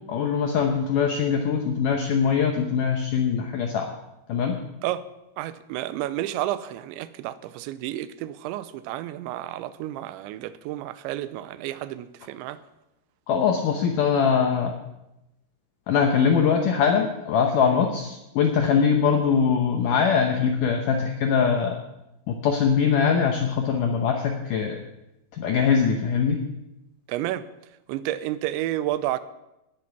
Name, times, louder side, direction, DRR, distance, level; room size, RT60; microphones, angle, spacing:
voice 1, 0.1-3.9 4.3-4.6 13.3-14.7 15.9-21.7 22.3-24.8 25.3-26.4, left 6 dB, 85° left, 1.8 m, -22 dB
voice 2, 5.4-12.6 27.1-27.5 27.9-29.2, right 13 dB, 90° right, 3.0 m, -31 dB
18.5 x 8.6 x 5.9 m
omnidirectional pair, 5.2 m